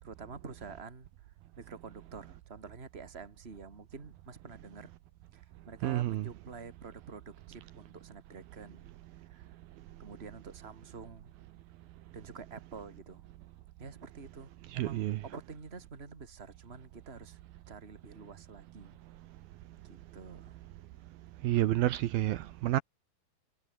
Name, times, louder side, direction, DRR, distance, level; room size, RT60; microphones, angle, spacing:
voice 1, 0.0-4.9 5.3-8.9 9.2-9.5 10.0-11.3 12.1-13.2 13.8-17.4 17.7-19.0 19.8-20.6, right 4 dB, 15° right, 2.7 m, -48 dB
voice 2, 5.8-6.3 14.7-15.2 21.4-22.8, right 15 dB, 75° right, 2.7 m, -29 dB
omnidirectional pair, 4.5 m